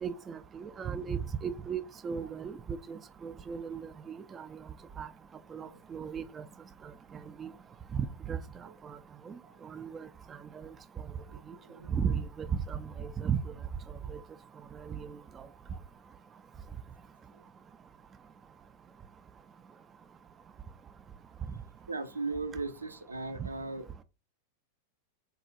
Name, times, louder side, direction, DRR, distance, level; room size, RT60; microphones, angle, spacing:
voice 1, 0.0-2.5 2.9-3.8 4.1-4.5 5.0-5.1 5.5-6.4 7.4-7.5 7.9-8.4 9.3-9.4 9.7-10.1 11.9-13.4 14.1-14.2, right 7 dB, 20° right, 0.3 m, -35 dB
voice 2, 11.3-11.9 21.9-24.0, right 3 dB, 80° right, 0.5 m, -38 dB
3.9 x 2.3 x 3.9 m
figure-of-eight pair, 90°, 0 cm